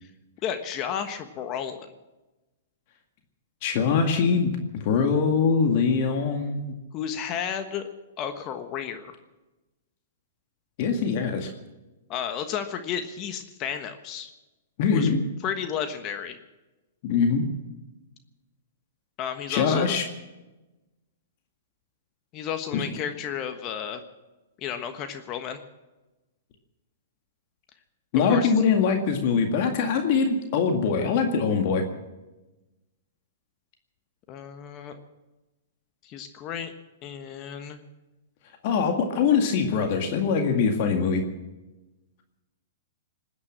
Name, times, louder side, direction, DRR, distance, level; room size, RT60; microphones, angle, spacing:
voice 1, 0.4-1.8 6.9-7.9 8.2-9.2 12.1-14.3 14.9-15.1 15.4-16.4 19.2-19.9 22.3-24.0 24.6-25.6 28.2-28.5 34.3-35.0 36.0-36.7 37.0-37.8, left 8 dB, 35° left, 8 dB, 1.3 m, -32 dB
voice 2, 3.6-6.7 10.8-11.5 14.8-15.3 17.0-17.5 19.5-20.0 22.7-22.8 28.1-31.8 38.6-41.2, left 5 dB, 50° left, 4 dB, 2.0 m, -23 dB
20.0 x 9.7 x 7.4 m, 1.1 s
hypercardioid pair, 130°, 0 cm